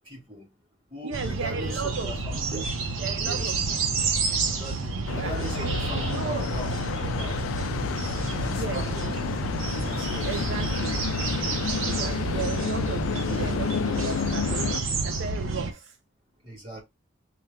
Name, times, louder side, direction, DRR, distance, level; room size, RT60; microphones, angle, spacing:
voice 1, 0.1-0.4 0.9-2.6 3.2-3.5 4.4-6.7 7.0-7.3 8.1-9.1 9.8-10.5 16.5-16.8, equal, 25° right, 2.1 m, -39 dB
voice 2, 1.0-2.1 2.5-2.6 3.0-3.8 4.9-6.5 8.5-9.2 10.3-11.0 11.8-14.7 15.0-16.0, right 6 dB, 60° right, 0.3 m, -35 dB
sound 1, 1.1-15.7, right 3 dB, 80° right, 0.7 m, -29 dB
sound 2, 5.1-14.8, left 7 dB, 90° left, 0.3 m, -31 dB
4.5 x 2.2 x 3.5 m
head